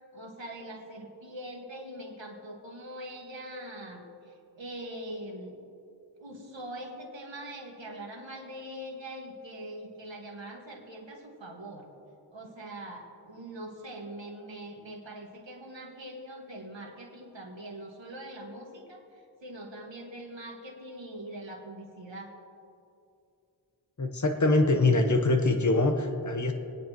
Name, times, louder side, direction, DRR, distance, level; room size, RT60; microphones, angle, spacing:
voice 1, 0.1-4.0 4.6-5.6 6.2-11.9 12.3-19.0 19.4-22.3, right 1 dB, 90° right, -1 dB, 1.7 m, -42 dB
voice 2, 24.0-26.5, left 2 dB, 40° left, 5 dB, 1.2 m, -24 dB
24.0 x 9.4 x 3.1 m, 2.6 s
wide cardioid pair, 50°, 44 cm